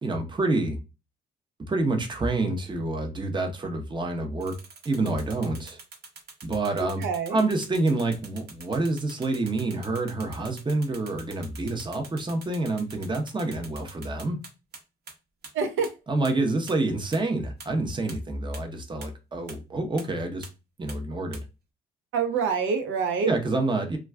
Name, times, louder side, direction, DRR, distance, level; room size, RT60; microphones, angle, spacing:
voice 1, 0.0-0.8 1.7-4.6 4.8-5.8 6.4-14.4 16.1-20.5 20.8-21.4 23.2-24.0, right 2 dB, 25° right, 0.7 m, -27 dB
Strobe click, 4.4-14.8 15.1-15.2 15.4-15.5 15.8-15.9 16.2-16.3 16.7-16.8 17.1-17.2 17.6-17.7 18.1-18.2 18.5-18.6 19.0-19.1 19.5-19.6 20.0-20.1 20.4-20.5 20.9-21.0 21.3-21.4, right 4 dB, 55° right, 0.9 m, -44 dB
voice 2, 6.8-7.4 15.5-15.9 22.1-23.3, right 5 dB, 85° right, 0.7 m, -26 dB
2.3 x 2.2 x 3.3 m
cardioid pair, 90°, 20 cm